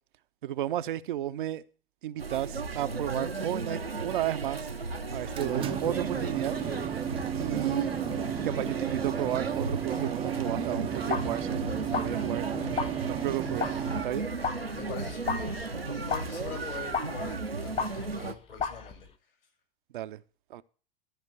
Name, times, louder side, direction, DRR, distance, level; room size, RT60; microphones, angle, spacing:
voice 1, 0.4-1.6 2.0-4.7 5.1-6.9 7.4-7.9 8.4-12.5 13.0-14.3 19.9-20.2 20.5-20.6, right 12 dB, 60° right, 0.7 m, -33 dB
sound 1, 2.2-18.3, right 3 dB, 90° right, 0.9 m, -35 dB
sound 2, 5.1-14.0, right 10 dB, 20° right, 0.5 m, -34 dB
sound 3, 11.1-11.5 11.8-18.3 18.6-19.1, left 5 dB, 20° left, 0.7 m, -36 dB
voice 2, 14.7-15.6 15.9-19.1, left 6 dB, 70° left, 5.3 m, -42 dB
13.5 x 5.2 x 7.7 m
figure-of-eight pair, 90°, 29 cm